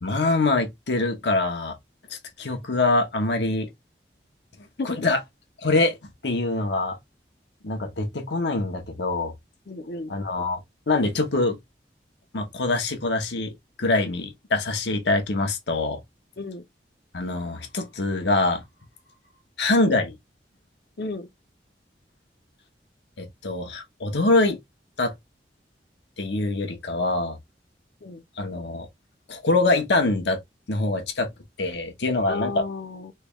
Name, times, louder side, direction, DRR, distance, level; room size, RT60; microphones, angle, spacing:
voice 1, 0.0-1.8 2.1-3.7 4.8-5.2 5.6-6.0 6.2-7.0 7.6-9.3 10.1-10.6 10.9-11.6 12.3-16.0 17.1-18.6 19.6-20.2 23.2-24.6 25.0-25.1 26.2-27.4 28.4-28.9 29.3-30.4 30.7-31.3 31.6-32.6, left 2 dB, 85° left, 0.9 m, -24 dB
voice 2, 9.7-10.1 16.4-16.6 21.0-21.3 28.0-28.2 32.3-33.1, left 3 dB, 65° left, 0.7 m, -33 dB
3.3 x 3.2 x 2.3 m
head